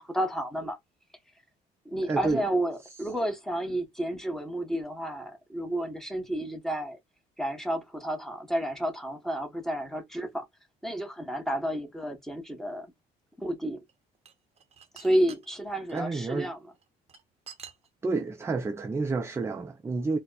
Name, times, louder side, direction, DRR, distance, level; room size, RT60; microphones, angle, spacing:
voice 1, 0.1-0.8 1.8-7.0 7.4-10.4 10.8-12.9 13.4-13.8 14.9-16.6, right 1 dB, ahead, 1.0 m, -31 dB
voice 2, 2.1-2.4 15.9-16.5 18.0-20.2, right 3 dB, 15° right, 0.4 m, -29 dB
sound 1, 13.9-16.0 16.7-18.3, right 7 dB, 40° right, 0.7 m, -47 dB
4.2 x 2.1 x 2.3 m
cardioid pair, 110°, 17 cm